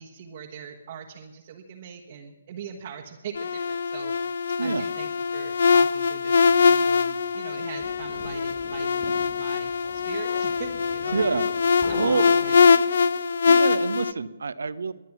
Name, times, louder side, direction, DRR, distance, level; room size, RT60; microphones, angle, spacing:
voice 1, 0.0-4.1 4.6-11.4 11.9-12.6, right 7 dB, 45° right, -1 dB, 1.4 m, -41 dB
sound 1, 3.4-14.1, left 5 dB, 60° left, 0.6 m, -23 dB
sound 2, 7.3-13.2, left 3 dB, 25° left, 2.8 m, -42 dB
voice 2, 11.1-11.5 11.9-12.3 13.4-14.9, right 4 dB, 70° right, 15 dB, 0.8 m, -27 dB
22.0 x 9.2 x 6.0 m, 1.2 s
figure-of-eight pair, 135°, 0 cm